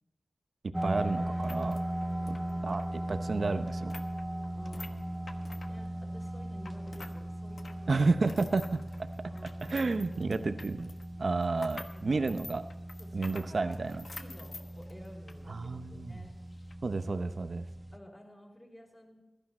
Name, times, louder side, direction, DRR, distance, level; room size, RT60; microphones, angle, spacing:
sound 1, 0.7-18.0, right 1 dB, 10° right, 1.0 m, -38 dB
voice 1, 0.8-1.8 2.3-2.4 2.6-4.0 7.9-9.1 9.6-10.9 11.2-12.6 13.1-14.0 15.5-16.2 16.8-17.6, right 3 dB, 65° right, 10 dB, 0.8 m, -31 dB
sound 2, 1.3-7.2 7.5-15.4 15.7-15.8 16.5-16.7, left 3 dB, 70° left, 1.1 m, -49 dB
voice 2, 2.2-2.6 4.6-5.2 5.7-8.2 9.2-10.3 11.9-12.2 13.0-13.8 14.1-16.3 17.9-19.2, left 1 dB, 25° left, 0 dB, 4.9 m, -52 dB
15.5 x 12.0 x 4.3 m, 1.1 s
cardioid pair, 45°, 0 cm